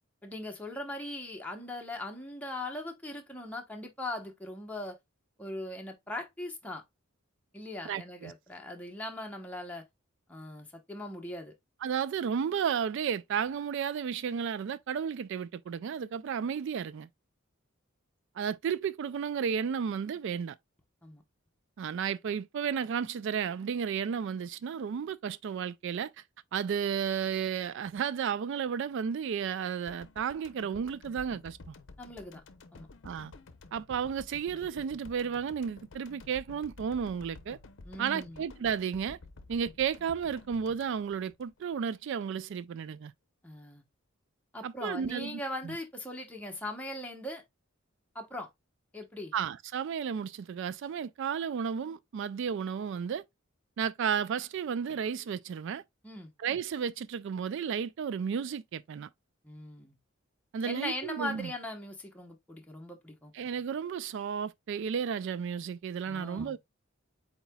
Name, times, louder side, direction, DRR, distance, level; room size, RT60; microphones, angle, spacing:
voice 1, 0.2-5.0 5.4-6.8 7.5-9.8 10.3-11.5 21.0-21.2 32.0-32.4 32.7-32.9 37.8-38.4 43.4-43.8 44.5-47.4 48.1-48.5 48.9-49.3 56.0-56.3 59.4-60.0 60.6-63.3 66.1-66.6, left 1 dB, 5° left, 0.9 m, -40 dB
voice 2, 7.8-8.3 11.8-17.1 18.4-20.6 21.8-26.1 26.5-31.7 33.0-33.3 33.7-37.6 38.0-39.2 39.5-43.1 44.6-45.7 49.3-53.2 53.8-55.8 56.4-59.1 60.5-61.5 63.3-66.6, right 7 dB, 60° right, 0.3 m, -33 dB
sound 1, 29.9-42.1 42.3-42.5, left 3 dB, 60° left, 0.7 m, -52 dB
8.0 x 2.9 x 2.2 m
head